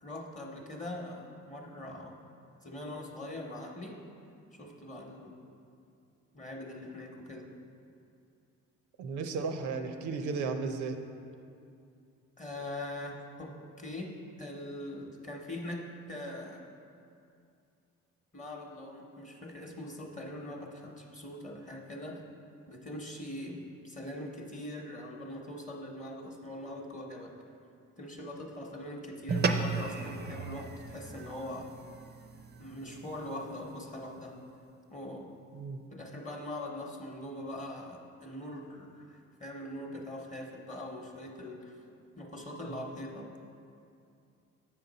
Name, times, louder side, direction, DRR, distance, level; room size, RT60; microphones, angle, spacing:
voice 1, 0.0-2.2 2.6-4.0 4.5-5.4 6.3-7.5 12.4-14.1 14.4-16.7 18.3-22.2 22.7-27.4 28.0-31.7 32.6-34.4 34.9-35.3 35.9-41.8 42.2-43.4, left 1 dB, 25° left, 0 dB, 0.8 m, -42 dB
voice 2, 9.0-11.0 35.5-35.8, right 4 dB, 80° right, 7 dB, 0.6 m, -34 dB
sound 1, 29.3-33.9, right 4 dB, 35° right, 0.5 m, -35 dB
7.5 x 5.8 x 4.0 m, 2.5 s
cardioid pair, 100°, 30 cm